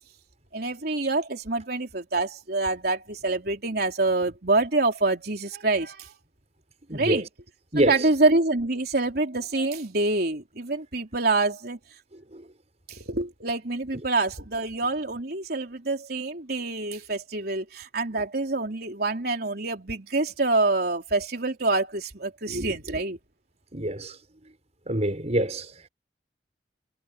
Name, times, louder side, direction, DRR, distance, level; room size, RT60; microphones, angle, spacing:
voice 1, 0.5-6.1 6.9-7.3 7.8-11.8 12.9-23.2, right 2 dB, 60° right, 3.9 m, -26 dB
voice 2, 6.9-7.3 7.7-8.1 12.3-12.4 23.7-24.2 24.9-25.9, right 1 dB, 40° right, 5.4 m, -26 dB
head